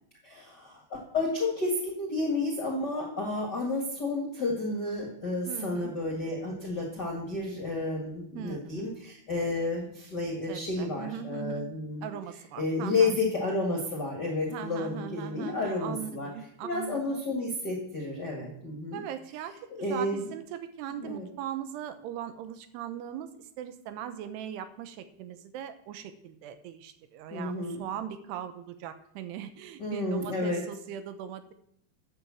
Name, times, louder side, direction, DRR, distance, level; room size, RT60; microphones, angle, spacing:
voice 1, 0.2-12.1 12.6-16.3 16.6-19.0 19.7-20.3 20.9-21.2 27.3-27.8 29.8-30.6, left 2 dB, 50° left, -1 dB, 1.2 m, -31 dB
voice 2, 5.5-5.9 8.4-8.9 10.5-11.7 12.0-13.1 14.5-17.2 18.9-19.5 19.9-31.5, right 10 dB, 80° right, 10 dB, 2.8 m, -40 dB
10.5 x 7.2 x 7.2 m, 0.73 s
omnidirectional pair, 4.9 m